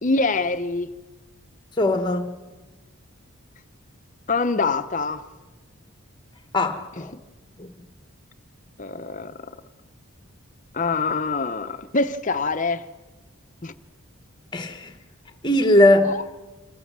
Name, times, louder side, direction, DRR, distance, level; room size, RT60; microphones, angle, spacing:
voice 1, 0.0-0.9 4.3-5.3 7.0-7.2 8.8-9.5 10.7-12.9 13.6-13.7 16.0-16.2, left 3 dB, 35° left, 0.7 m, -25 dB
voice 2, 1.8-2.3 6.5-7.1 7.6-7.7 14.5-14.9 15.4-16.1, left 1 dB, 20° left, 1.1 m, -19 dB
26.5 x 14.0 x 7.4 m
head